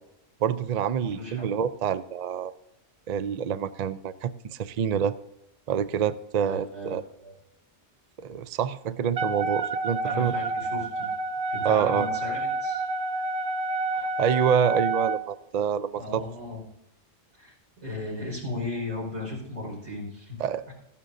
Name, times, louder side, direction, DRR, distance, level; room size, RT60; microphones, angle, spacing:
voice 1, 0.4-2.5 3.1-5.2 5.7-7.0 8.2-10.3 11.6-12.1 14.0-16.2 20.4-20.7, right 8 dB, 55° right, 14 dB, 0.5 m, -27 dB
voice 2, 1.0-1.5 6.4-7.3 10.0-11.1 11.5-12.8 16.0-16.6 17.4-17.5 17.8-20.4 20.7-20.8, left 2 dB, 85° right, -3 dB, 5.3 m, -36 dB
Wind instrument woodwind instrument, 9.2-15.2, right 3 dB, 70° right, 1.0 m, -29 dB
15.5 x 11.0 x 2.6 m, 0.87 s
omnidirectional pair, 1.1 m